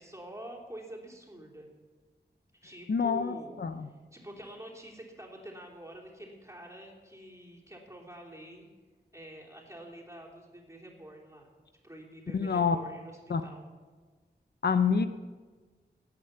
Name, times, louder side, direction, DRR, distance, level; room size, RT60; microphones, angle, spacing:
voice 1, 0.0-1.7 2.6-8.7 9.1-11.5 11.8-13.6, right 1 dB, 15° right, -1 dB, 3.3 m, -47 dB
voice 2, 2.9-3.9 12.3-12.8 13.3-13.4 14.6-15.1, left 5 dB, 65° left, 10 dB, 0.7 m, -27 dB
17.0 x 9.5 x 6.9 m, 1.4 s
wide cardioid pair, 80°, 18 cm